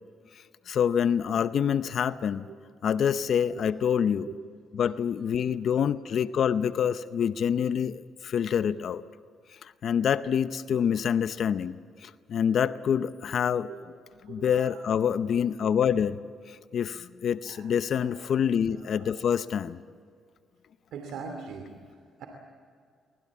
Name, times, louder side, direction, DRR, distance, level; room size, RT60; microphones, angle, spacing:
voice 1, 0.3-2.5 2.8-4.3 4.8-9.0 9.6-13.7 14.3-16.2 16.5-19.8, left 8 dB, 60° left, 13 dB, 0.7 m, -26 dB
voice 2, 3.5-3.8 4.2-4.4 5.5-5.6 13.6-13.9 14.2-15.0 17.5-18.4 18.7-19.1 20.9-22.3, right 5 dB, 75° right, 4 dB, 2.7 m, -43 dB
24.0 x 19.5 x 8.5 m, 2.2 s
cardioid pair, 90°, 0 cm